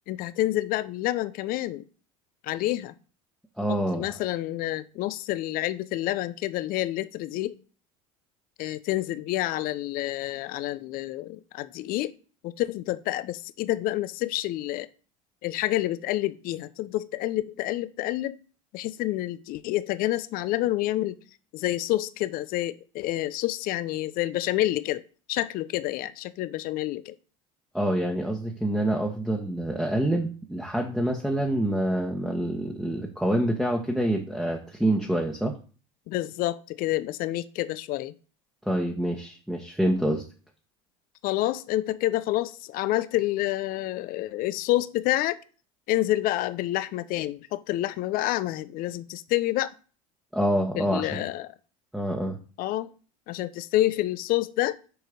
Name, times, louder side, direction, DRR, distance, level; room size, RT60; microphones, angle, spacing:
voice 1, 0.1-1.8 2.4-2.9 3.7-7.5 8.6-12.1 12.4-14.9 15.4-18.4 18.7-21.2 21.5-25.0 25.3-27.1 36.1-38.1 41.2-45.4 45.9-49.7 50.8-51.5 52.6-52.9 53.3-54.8, left 15 dB, 55° left, 0.7 m, -28 dB
voice 2, 3.6-4.2 27.7-35.6 38.7-40.2 50.3-51.2 51.9-52.4, right 1 dB, ahead, 1.4 m, -26 dB
6.6 x 4.4 x 5.3 m
hypercardioid pair, 85°, 18 cm